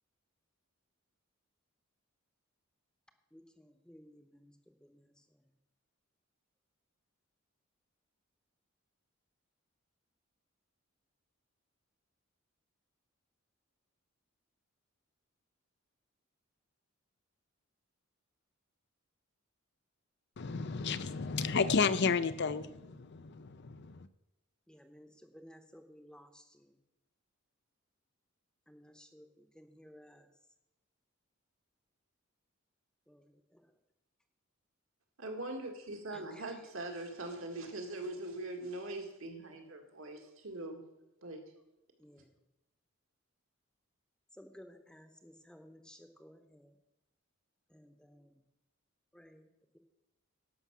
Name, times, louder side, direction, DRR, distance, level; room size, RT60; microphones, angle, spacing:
voice 1, 3.3-5.5 24.7-26.8 28.7-30.3 33.1-33.8 36.1-36.7 42.0-42.3 44.3-46.8 47.7-48.4 49.1-49.5, equal, 5° left, 7 dB, 0.9 m, -57 dB
voice 2, 20.4-24.1, left 5 dB, 55° left, 13 dB, 0.6 m, -32 dB
voice 3, 35.2-40.8 41.2-41.4, right 2 dB, 70° right, 3 dB, 1.9 m, -42 dB
11.5 x 5.8 x 7.4 m, 0.92 s
head